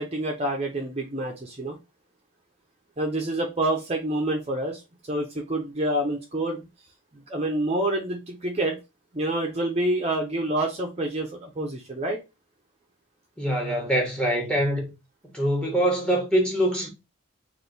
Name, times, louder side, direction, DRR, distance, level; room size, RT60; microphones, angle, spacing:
voice 1, 0.0-1.8 3.0-4.8 5.1-6.6 7.3-8.8 9.1-12.2, right 1 dB, 30° right, 0.6 m, -27 dB
voice 2, 13.4-14.9 15.3-16.9, right 1 dB, 5° left, 1.1 m, -24 dB
3.4 x 2.6 x 3.9 m
head